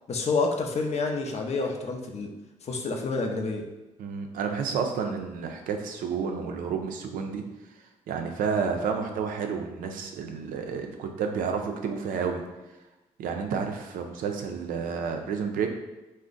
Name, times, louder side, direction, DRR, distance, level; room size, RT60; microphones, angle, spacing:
voice 1, 0.1-2.3 2.6-3.6, left 3 dB, 50° left, 3 dB, 0.5 m, -28 dB
voice 2, 4.0-7.4 8.1-12.4 13.2-15.7, right 6 dB, 75° right, 4 dB, 0.4 m, -30 dB
2.4 x 2.1 x 3.7 m, 1.1 s
supercardioid pair, 60°, 14 cm